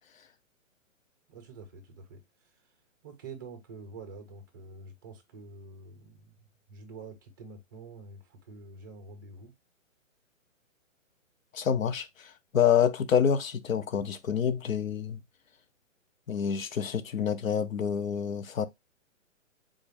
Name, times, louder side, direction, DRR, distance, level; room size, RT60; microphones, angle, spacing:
voice 1, 1.3-2.5 3.0-9.5, right 3 dB, 15° right, 0.5 m, -47 dB
voice 2, 11.5-15.2 16.3-18.7, left 8 dB, 85° left, 0.8 m, -27 dB
3.8 x 2.6 x 3.4 m
hypercardioid pair, 155°, 39 cm